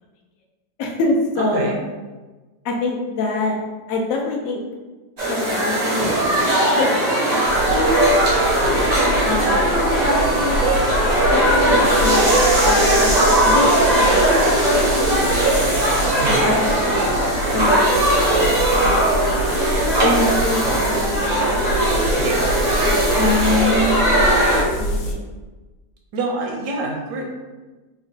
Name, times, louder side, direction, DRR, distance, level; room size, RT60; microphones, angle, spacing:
voice 1, 0.8-1.8 2.6-3.6 3.9-4.6 5.3-7.4 7.7-8.1 9.2-9.8 11.3-12.3 12.6-15.5 16.2-17.1 17.5-19.3 20.0-20.7 22.8-24.0 24.8-25.2, left 2 dB, 70° left, -1 dB, 0.9 m, -25 dB
voice 2, 1.4-1.8 16.2-16.5 22.2-22.4 26.1-27.2, right 2 dB, 85° right, 0 dB, 1.2 m, -26 dB
sound 1, 5.2-24.6, right 1 dB, 55° right, 0.4 m, -18 dB
sound 2, 7.4-25.1, equal, 85° left, 1.2 m, -27 dB
3.8 x 2.1 x 2.6 m, 1.2 s
omnidirectional pair, 1.8 m